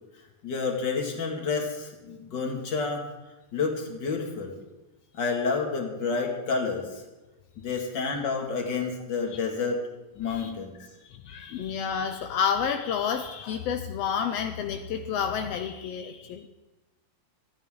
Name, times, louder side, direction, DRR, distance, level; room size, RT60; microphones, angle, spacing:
voice 1, 0.4-3.0 3.5-4.6 5.1-7.0 7.6-9.8 10.2-10.8, left 4 dB, 40° left, 1 dB, 2.5 m, -29 dB
voice 2, 11.1-16.5, left 7 dB, 75° left, 6 dB, 1.5 m, -30 dB
27.5 x 9.9 x 3.8 m, 1.1 s
omnidirectional pair, 3.6 m